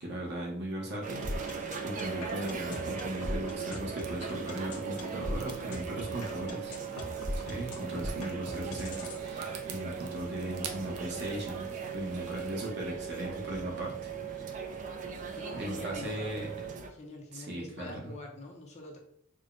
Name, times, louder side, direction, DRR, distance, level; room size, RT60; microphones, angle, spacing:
voice 1, 0.0-6.8 7.4-14.6 15.5-16.5 17.3-18.1, right 1 dB, 50° right, -1 dB, 0.9 m, -38 dB
sound 1, 1.0-16.9, right 6 dB, 35° right, 0.3 m, -39 dB
sound 2, 1.2-9.2, left 1 dB, 80° left, 0.7 m, -38 dB
sound 3, 4.0-12.7, right 5 dB, 90° right, 0.5 m, -49 dB
voice 2, 15.4-16.2 16.9-19.0, left 2 dB, 30° left, 0 dB, 0.6 m, -45 dB
4.8 x 2.1 x 2.5 m, 0.68 s
head